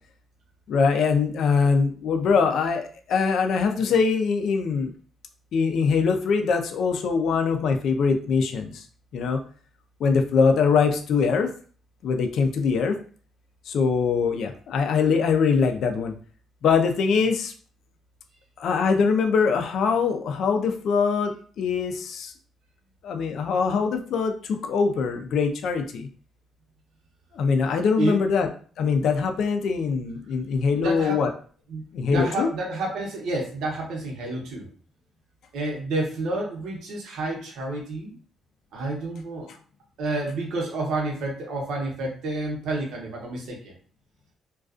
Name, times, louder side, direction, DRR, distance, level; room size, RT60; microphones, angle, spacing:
voice 1, 0.7-4.9 5.5-8.8 9.1-9.4 10.0-11.5 12.0-12.9 13.7-16.1 16.6-17.5 18.6-22.3 23.0-26.1 27.3-28.5 28.8-31.3 31.9-32.5, left 5 dB, 70° left, 5 dB, 0.4 m, -23 dB
voice 2, 30.8-31.2 31.7-34.7 35.5-38.1 38.7-39.5 40.0-43.7, right 2 dB, 80° right, -1 dB, 0.8 m, -29 dB
2.4 x 2.3 x 2.4 m, 0.43 s
cardioid pair, 90°, 0 cm